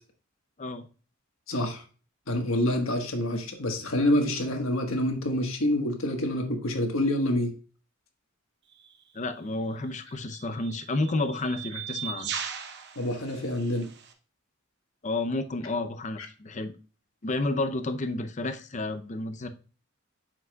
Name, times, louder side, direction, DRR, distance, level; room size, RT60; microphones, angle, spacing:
voice 1, 1.5-1.8 2.3-7.5 13.0-13.9, left 1 dB, 80° left, 3 dB, 1.4 m, -27 dB
sound 1, 8.7-8.9 9.9-14.1, right 8 dB, 55° right, 0.8 m, -39 dB
voice 2, 9.1-12.3 15.0-16.7 17.2-19.5, left 2 dB, 35° left, 9 dB, 0.6 m, -31 dB
7.7 x 5.9 x 2.3 m, 0.37 s
head